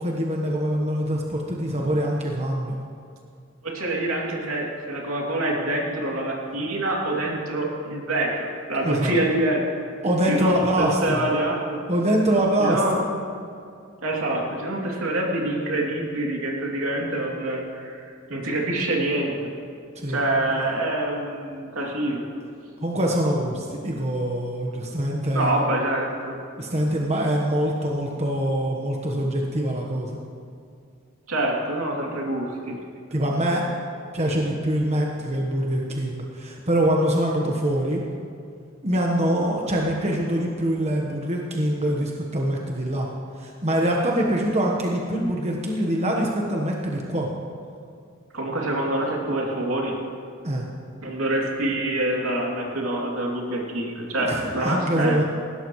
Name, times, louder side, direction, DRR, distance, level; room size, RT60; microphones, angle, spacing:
voice 1, 0.0-2.8 8.8-9.2 10.0-11.3 11.9-12.8 19.9-20.7 22.8-25.6 26.6-30.2 33.1-33.6 34.1-38.0 38.8-43.1 43.4-47.3 50.4-50.6 54.2-55.2, right 1 dB, 30° right, -1 dB, 1.2 m, -24 dB
voice 2, 3.6-9.9 10.3-11.9 12.6-13.0 14.0-19.5 20.1-22.2 25.3-26.4 31.3-32.8 48.3-50.0 51.0-55.2, right 1 dB, 70° right, -2 dB, 2.9 m, -26 dB
19.5 x 17.0 x 3.2 m, 2.4 s
head